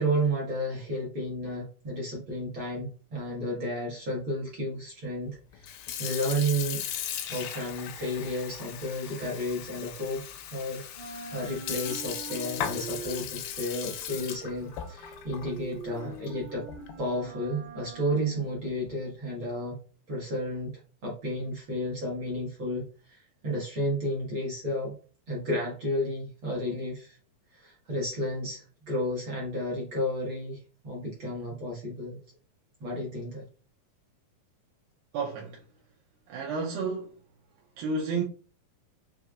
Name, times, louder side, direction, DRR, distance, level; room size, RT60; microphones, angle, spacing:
voice 1, 0.0-5.6 6.0-6.8 7.3-10.2 10.5-16.6 17.0-19.8 20.1-20.7 21.0-24.9 25.3-27.2 27.5-32.2 32.8-33.4, equal, 50° right, 1.6 m, -32 dB
Sink (filling or washing) / Fill (with liquid), 5.5-17.1, left 9 dB, 85° left, 2.5 m, -38 dB
sound 1, 7.9-10.6 10.8-19.0, right 2 dB, 25° right, 1.0 m, -45 dB
voice 2, 35.1-35.6 36.3-37.1 37.8-38.2, right 4 dB, 80° right, 2.5 m, -31 dB
6.2 x 3.0 x 2.4 m
omnidirectional pair, 4.2 m